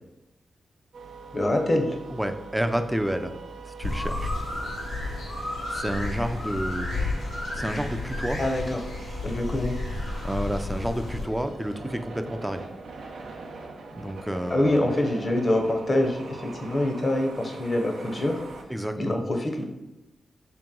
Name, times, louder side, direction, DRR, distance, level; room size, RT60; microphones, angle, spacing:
sound 1, 0.9-18.6, right 4 dB, 90° right, 0.5 m, -43 dB
voice 1, 1.3-1.9 8.4-8.8 9.2-9.8 14.5-18.4 19.0-19.6, left 1 dB, 40° left, 3 dB, 0.7 m, -25 dB
voice 2, 2.1-3.3 3.7-4.3 5.7-7.1 7.5-8.4 10.2-12.6 14.0-14.9 18.7-19.2, right 1 dB, 10° right, 8 dB, 0.4 m, -30 dB
sound 2, 3.8-11.2, left 2 dB, 85° left, 1.3 m, -31 dB
3.4 x 2.9 x 3.7 m, 0.94 s
cardioid pair, 65°, 0 cm